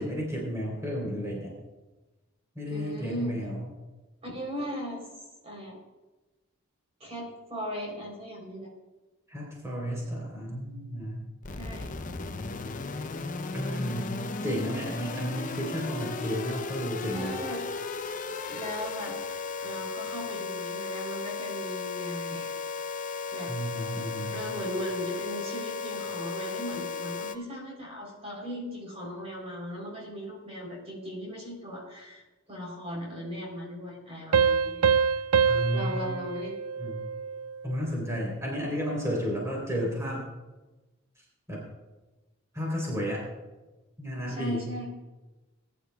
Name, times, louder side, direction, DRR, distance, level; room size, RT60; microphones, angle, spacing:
voice 1, 0.0-1.5 2.6-3.7 9.3-11.2 13.5-17.4 23.5-24.4 35.5-36.1 36.8-37.0 37.6-40.3 41.2-41.6 42.5-43.2 44.0-44.7, equal, 15° right, -3 dB, 3.6 m, -32 dB
voice 2, 2.7-3.4 4.2-5.0 5.4-5.8 7.0-8.7 11.6-11.9 17.1-17.6 18.4-19.2 19.6-22.5 23.3-23.5 24.3-34.8 35.7-36.6 44.3-44.9, equal, 30° right, -2 dB, 3.6 m, -37 dB
sound 1, 11.4-27.4, left 4 dB, 35° left, 0.6 m, -35 dB
sound 2, 34.3-37.6, right 6 dB, 85° right, 0.4 m, -25 dB
21.0 x 11.0 x 2.3 m, 1.1 s
head